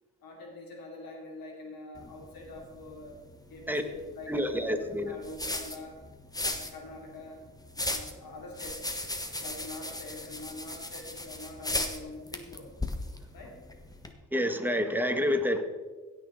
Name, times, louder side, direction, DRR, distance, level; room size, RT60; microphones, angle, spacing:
voice 1, 0.2-3.2 3.5-6.0 6.4-7.4 7.7-8.9 9.4-12.7 13.3-13.6, left 2 dB, 80° left, -1 dB, 3.0 m, -45 dB
sound 1, 2.0-14.1, left 1 dB, 10° left, 1.2 m, -38 dB
voice 2, 4.3-5.1 14.3-15.6, left 1 dB, 5° right, 6 dB, 1.3 m, -28 dB
16.5 x 6.3 x 3.9 m, 1.4 s
cardioid pair, 65°, 34 cm